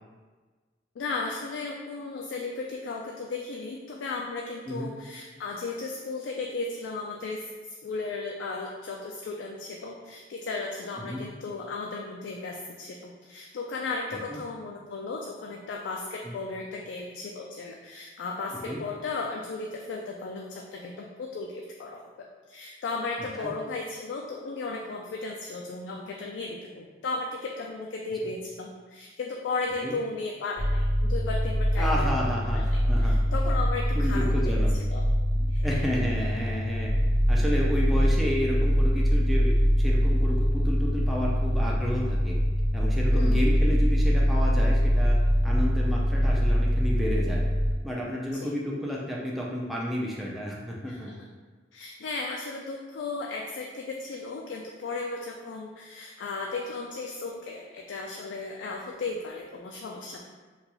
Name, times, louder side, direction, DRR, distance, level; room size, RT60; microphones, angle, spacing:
voice 1, 1.0-34.6 34.9-35.1 35.5-35.8 38.0-38.1 43.1-43.4 48.3-48.5 50.9-51.0 51.7-60.2, left 3 dB, 85° left, 0 dB, 0.3 m, -35 dB
sound 1, 30.6-47.8, equal, 80° right, 1.4 m, -23 dB
voice 2, 31.8-33.2 33.9-34.8 35.3-36.9 37.3-42.4 42.7-47.4 47.8-51.1, equal, ahead, -4 dB, 0.4 m, -31 dB
3.9 x 2.2 x 2.9 m, 1.4 s
head